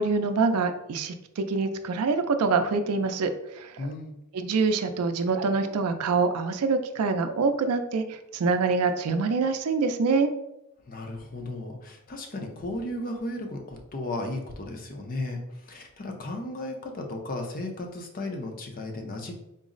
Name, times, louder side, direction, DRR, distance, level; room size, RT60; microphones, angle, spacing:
voice 1, 0.0-3.9 4.3-8.0 8.3-10.3, right 4 dB, 90° right, 8 dB, 0.4 m, -25 dB
voice 2, 3.8-4.2 10.9-19.3, left 2 dB, 40° left, 2 dB, 0.6 m, -35 dB
3.9 x 2.0 x 3.8 m, 0.86 s
head